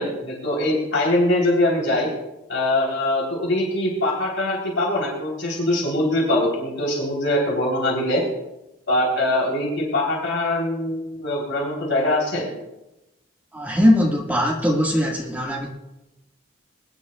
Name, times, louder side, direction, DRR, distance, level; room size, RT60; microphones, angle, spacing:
voice 1, 0.0-2.1 2.5-8.2 8.9-12.5, left 1 dB, 75° left, -3 dB, 3.4 m, -22 dB
voice 2, 13.5-15.7, left 1 dB, 10° right, -2 dB, 1.6 m, -20 dB
21.5 x 11.0 x 2.3 m, 0.94 s
head